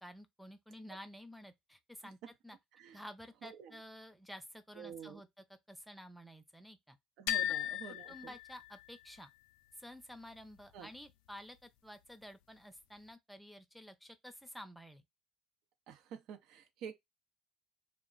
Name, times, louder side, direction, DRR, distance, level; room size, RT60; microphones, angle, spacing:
voice 1, 0.0-2.2 2.4-2.6 2.9-5.3 5.7-7.0 7.9-9.3 9.8-15.0, equal, ahead, 0.6 m, -51 dB
voice 2, 3.4-3.8 4.7-5.3 7.2-8.3 10.7-10.9 15.9-16.9, right 7 dB, 70° right, 0.6 m, -49 dB
sound 1, 7.3-9.2, left 12 dB, 85° left, 0.3 m, -37 dB
2.3 x 2.1 x 3.7 m
supercardioid pair, 95°, 0 cm